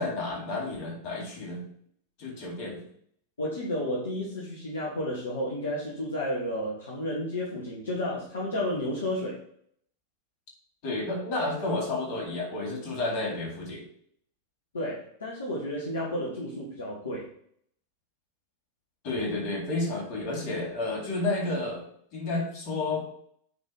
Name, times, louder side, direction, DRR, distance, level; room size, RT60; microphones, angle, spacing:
voice 1, 0.0-1.6 2.2-2.8 10.8-13.8 19.0-21.8 22.1-23.0, left 2 dB, 45° left, -1 dB, 3.9 m, -31 dB
voice 2, 3.4-9.4 14.7-17.3, left 1 dB, 70° left, -4 dB, 1.9 m, -32 dB
9.7 x 4.4 x 5.2 m, 0.65 s
figure-of-eight pair, 90°, 0 cm